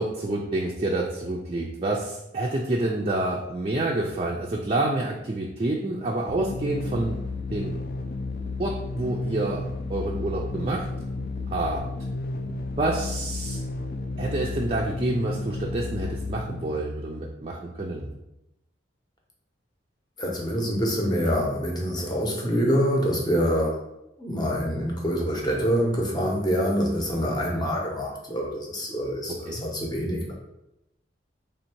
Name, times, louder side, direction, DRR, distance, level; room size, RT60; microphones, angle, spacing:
voice 1, 0.0-7.2 7.5-7.7 8.6-10.9 11.5-11.8 12.8-13.6 14.2-18.1 29.5-29.6, right 2 dB, 30° right, -2 dB, 0.4 m, -28 dB
sound 1, 6.3-17.0, left 3 dB, 50° left, 0.4 m, -32 dB
voice 2, 20.2-23.8 24.2-30.3, equal, 25° left, -1 dB, 0.8 m, -26 dB
3.4 x 2.7 x 4.4 m, 0.87 s
head